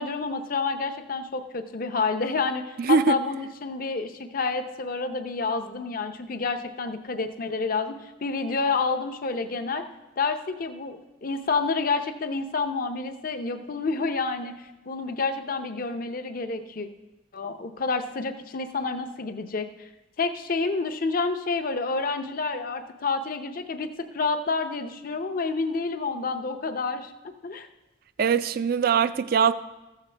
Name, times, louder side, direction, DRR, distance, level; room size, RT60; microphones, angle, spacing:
voice 1, 0.0-9.9 10.2-16.9 17.3-19.9 20.2-27.1 27.4-27.7, left 4 dB, 50° left, 7 dB, 0.6 m, -29 dB
voice 2, 2.8-3.2 28.2-29.5, right 6 dB, 50° right, 14 dB, 0.3 m, -22 dB
14.0 x 7.4 x 3.3 m, 1.0 s
head